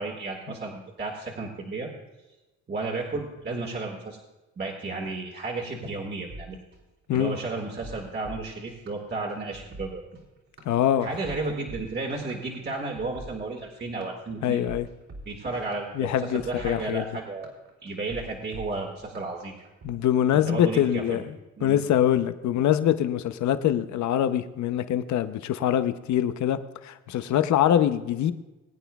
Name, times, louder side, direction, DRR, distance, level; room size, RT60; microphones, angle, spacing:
voice 1, 0.0-1.9 2.7-4.2 4.6-6.6 7.1-10.0 11.0-14.6 15.3-17.5 17.8-19.5 20.3-21.2 21.6-21.8, right 3 dB, 35° right, 0 dB, 1.9 m, -33 dB
sound 1, 6.3-19.9, right 1 dB, 60° right, 3.2 m, -45 dB
voice 2, 10.7-11.1 14.4-14.9 16.0-17.0 19.8-21.2 21.6-28.3, left 10 dB, 70° left, 11 dB, 0.7 m, -24 dB
21.5 x 9.1 x 2.3 m, 1.1 s
cardioid pair, 90°, 30 cm